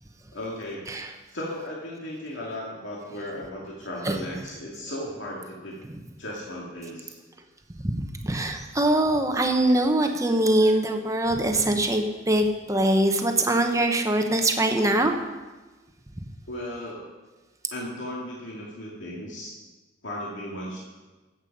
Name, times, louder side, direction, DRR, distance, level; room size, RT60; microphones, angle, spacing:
voice 1, 0.3-0.9 1.3-5.8 6.2-7.2 16.5-17.1 17.7-19.6 20.0-20.8, left 1 dB, 70° left, -4 dB, 2.4 m, -36 dB
voice 2, 8.2-15.1, right 1 dB, 15° right, 4 dB, 1.0 m, -22 dB
14.0 x 8.3 x 5.4 m, 1.2 s
head